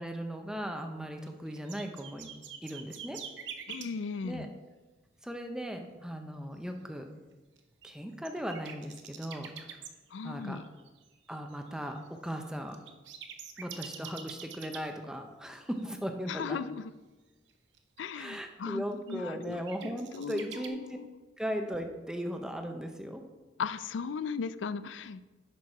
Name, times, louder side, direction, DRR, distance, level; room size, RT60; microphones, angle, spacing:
voice 1, 0.0-2.3 2.6-3.2 4.2-4.5 5.2-7.1 7.8-9.8 10.2-10.6 11.3-12.8 13.6-16.6 18.2-21.0 21.4-23.2, equal, 5° right, 5 dB, 0.7 m, -37 dB
sound 1, 1.0-3.9 7.6-9.9 10.3-14.9 15.7-15.8 17.5-18.0 19.1-20.7, right 7 dB, 75° right, 0.8 m, -45 dB
voice 2, 3.7-4.5 10.1-10.7 16.3-16.9 18.0-21.1 23.6-25.2, left 5 dB, 85° left, 14 dB, 0.4 m, -37 dB
10.5 x 4.7 x 4.7 m, 1.2 s
head